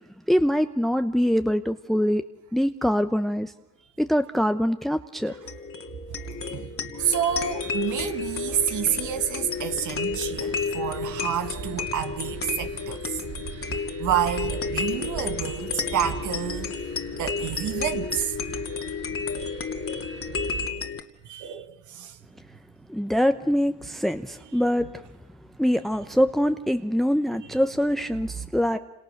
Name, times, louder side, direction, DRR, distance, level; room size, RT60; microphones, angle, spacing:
voice 1, 0.3-2.2 2.5-3.5 4.0-5.3 22.9-24.9 25.6-28.8, equal, ahead, 0.9 m, -23 dB
sound 1, 5.3-21.0, left 5 dB, 45° left, 2.4 m, -32 dB
voice 2, 6.2-13.2 14.0-16.7 17.2-18.3 21.2-22.2 24.8-24.9 28.4-28.5, right 9 dB, 75° right, 1.6 m, -29 dB
sound 2, 7.0-20.7, right 9 dB, 55° right, 1.2 m, -40 dB
28.5 x 27.5 x 6.6 m
cardioid pair, 90°, 30 cm